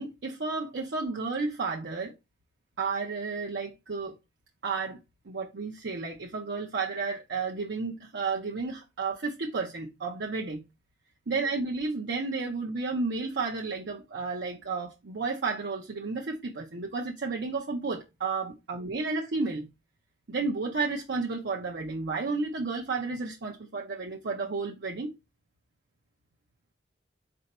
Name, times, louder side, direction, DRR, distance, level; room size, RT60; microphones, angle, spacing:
voice 1, 0.0-2.1 2.8-4.1 4.6-5.0 5.3-10.6 11.3-19.7 20.3-25.1, right 4 dB, 70° right, 0.6 m, -32 dB
4.3 x 2.6 x 4.1 m
head